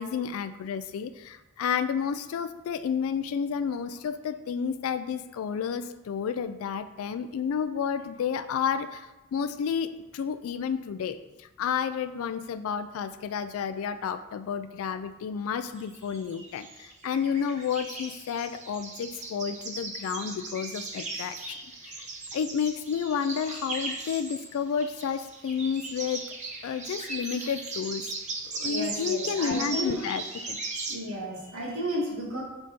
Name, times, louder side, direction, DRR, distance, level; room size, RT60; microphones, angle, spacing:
voice 1, 0.0-21.6 21.8-22.1 22.3-26.3 26.6-28.1 28.6-30.6, left 7 dB, 85° left, 11 dB, 0.3 m, -31 dB
sound 1, 15.7-24.5 24.8-31.0, right 3 dB, 35° right, 0.8 m, -38 dB
voice 2, 28.7-30.0 30.9-32.4, equal, 75° right, -3 dB, 1.7 m, -33 dB
5.3 x 4.1 x 5.2 m, 1.0 s
head